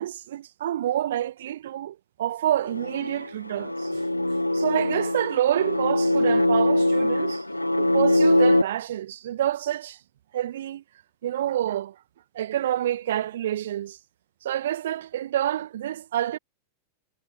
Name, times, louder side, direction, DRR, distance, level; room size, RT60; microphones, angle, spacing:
voice 1, 0.0-4.0 4.5-7.4 7.8-10.0 10.3-10.8 11.2-11.9 12.3-14.0 14.4-16.4, right 12 dB, 60° right, 1.6 m, -28 dB
sound 1, 2.7-8.6, left 1 dB, 85° left, 0.8 m, -22 dB
figure-of-eight pair, 90°, 0 cm